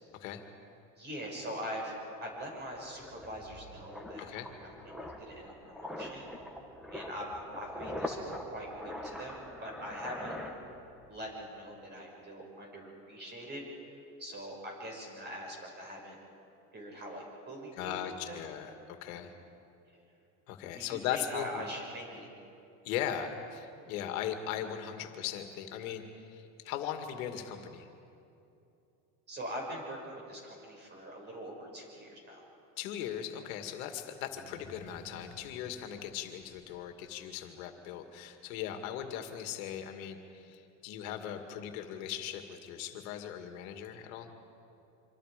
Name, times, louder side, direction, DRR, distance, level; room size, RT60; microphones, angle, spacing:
voice 1, 1.0-1.9 2.2-4.3 4.6-6.3 6.9-8.2 8.5-10.4 11.1-13.6 14.2-16.2 16.7-18.4 19.9-20.0 20.7-22.3 29.3-32.4, equal, 25° right, -1 dB, 6.8 m, -43 dB
sound 1, 2.1-11.2 11.4-11.7, left 1 dB, ahead, 2.4 m, -43 dB
voice 2, 4.2-4.5 17.7-19.3 20.5-21.6 22.8-27.9 32.8-44.3, left 9 dB, 85° left, 5 dB, 2.3 m, -39 dB
sound 2, 34.2-37.1 37.3-37.4, equal, 70° right, 5.7 m, -54 dB
26.0 x 26.0 x 5.2 m, 2.8 s
cardioid pair, 140°, 41 cm